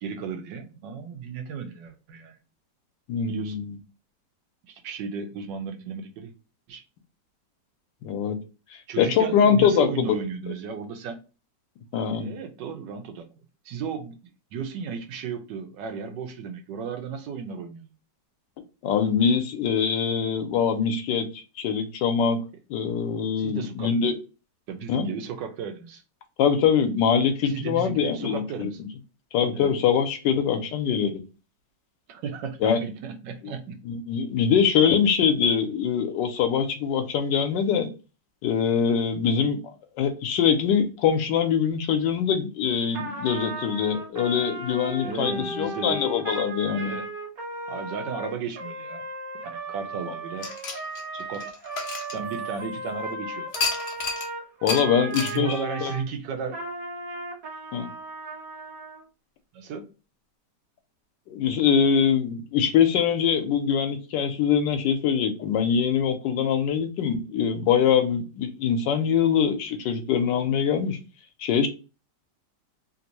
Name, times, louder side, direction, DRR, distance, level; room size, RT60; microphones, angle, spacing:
voice 1, 0.0-2.4 3.3-3.6 4.7-6.3 6.7-6.8 8.9-11.2 11.9-13.3 13.6-14.2 14.5-17.9 23.4-23.9 24.7-26.0 27.5-28.8 29.5-29.7 32.1-33.8 45.0-46.0 46.8-47.1 47.7-49.0 49.3-50.5 51.1-51.5 52.1-53.5 55.2-56.6 59.5-59.9, right 6 dB, 85° right, 1.3 m, -34 dB
voice 2, 3.1-3.8 8.0-8.4 9.0-10.2 11.9-12.3 18.8-22.4 22.7-24.2 24.9-25.1 26.4-28.7 29.3-31.1 32.6-32.8 33.8-37.9 38.4-46.9 54.6-55.6 55.8-55.9 57.7-57.9 61.3-71.0 71.4-71.7, left 7 dB, 80° left, 1.3 m, -23 dB
Trumpet, 42.9-56.0 56.5-59.0, right 1 dB, 60° right, 1.2 m, -36 dB
sound 1, 50.4-52.8 53.5-54.3 54.7-54.8 55.1-55.4, left 4 dB, 60° left, 0.7 m, -31 dB
3.3 x 2.6 x 2.9 m
omnidirectional pair, 1.9 m